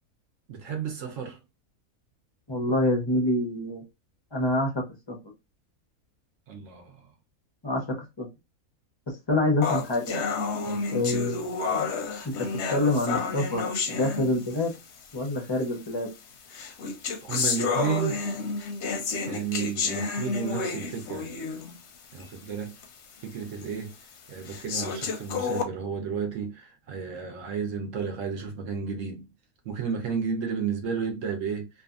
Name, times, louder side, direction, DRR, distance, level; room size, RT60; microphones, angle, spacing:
voice 1, 0.5-1.4 6.5-7.1 10.7-10.8 17.2-18.2 19.2-21.3 22.1-22.7 23.2-23.9 24.3-29.3 29.6-31.7, right 6 dB, 65° right, 1.0 m, -32 dB
voice 2, 2.5-3.8 4.3-5.2 7.6-8.3 9.3-10.3 10.9-11.9 12.4-14.7 15.1-16.1, left 1 dB, 35° left, 0.4 m, -27 dB
sound 1, 9.6-14.8 15.6-15.7 16.5-21.8 22.2-22.3 22.8-22.9 23.6-23.7 24.5-25.6, left 4 dB, 65° left, 0.8 m, -30 dB
2.6 x 2.4 x 2.3 m
omnidirectional pair, 1.5 m